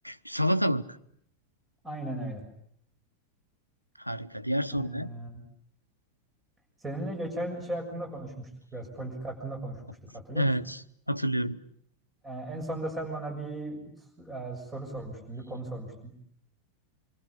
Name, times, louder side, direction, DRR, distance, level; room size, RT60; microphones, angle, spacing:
voice 1, 0.0-0.8 4.0-5.1 10.3-10.8 11.1-11.6, equal, 90° left, 12 dB, 1.1 m, -28 dB
voice 2, 1.8-2.5 4.7-5.4 6.8-10.5 12.2-16.1, right 1 dB, 15° right, 4 dB, 6.8 m, -37 dB
27.0 x 25.0 x 8.6 m, 0.67 s
figure-of-eight pair, 90°, 0 cm